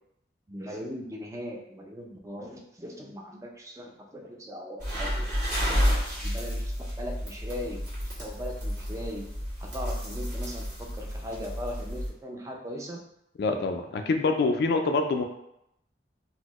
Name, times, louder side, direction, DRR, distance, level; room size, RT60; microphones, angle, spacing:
voice 1, 0.5-9.2 9.6-13.0, equal, 15° right, 0 dB, 0.4 m, -39 dB
sound 1, 4.8-12.1, equal, 45° right, 1.5 m, -31 dB
voice 2, 13.4-15.2, left 3 dB, 60° left, 5 dB, 0.3 m, -25 dB
4.0 x 2.1 x 3.0 m, 0.79 s
head